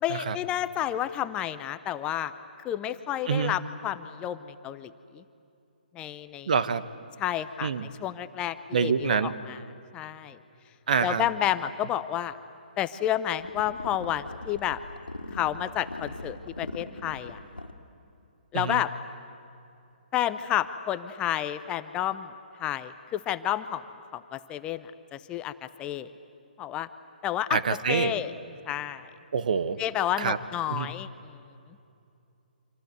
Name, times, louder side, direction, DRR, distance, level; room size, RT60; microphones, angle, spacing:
voice 1, 0.0-2.3 2.6-5.2 5.9-6.5 7.2-7.7 8.0-9.6 9.9-10.4 11.0-12.4 12.8-14.8 15.3-17.4 18.5-18.9 20.1-22.3 22.6-23.8 24.1-26.1 26.6-26.9 27.2-27.6 27.9-28.3 28.7-29.1 29.8-31.1, left 11 dB, 20° left, 12 dB, 0.8 m, -30 dB
voice 2, 6.5-6.8 7.6-7.9 8.7-9.3 10.9-11.3 18.5-18.8 27.5-28.1 29.3-29.8 30.2-30.4 30.7-30.9, right 6 dB, 55° right, 13 dB, 1.2 m, -26 dB
sound 1, 13.4-17.7, left 2 dB, 90° left, 2.2 m, -41 dB
28.0 x 26.0 x 8.0 m, 2.7 s
figure-of-eight pair, 135°, 5 cm